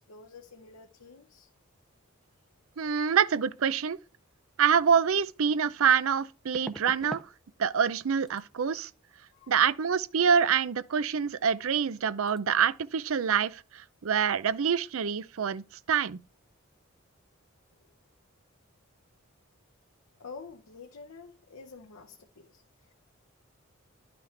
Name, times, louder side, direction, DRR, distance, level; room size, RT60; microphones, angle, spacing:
voice 1, 0.1-1.5 9.3-9.6 20.2-22.9, left 4 dB, 80° left, 0.8 m, -48 dB
voice 2, 2.8-4.0 4.6-7.2 7.6-8.9 9.5-16.2, right 7 dB, 75° right, 0.5 m, -26 dB
sound 1, 5.0-5.1 6.5-7.3 7.6-8.0 8.3-8.5 11.4-11.5 11.8-12.0 12.3-12.4, equal, ahead, 0.5 m, -44 dB
11.0 x 5.9 x 3.3 m
head